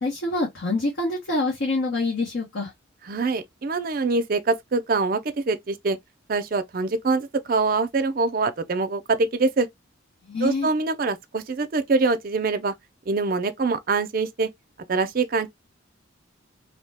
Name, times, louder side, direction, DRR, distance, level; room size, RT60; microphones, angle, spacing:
voice 1, 0.0-2.7 10.2-10.7, left 2 dB, 75° left, 1.0 m, -26 dB
voice 2, 3.0-6.0 6.3-9.7 10.4-12.7 13.1-14.5 14.9-15.5, right 3 dB, 45° right, 0.4 m, -24 dB
2.7 x 2.1 x 3.3 m
head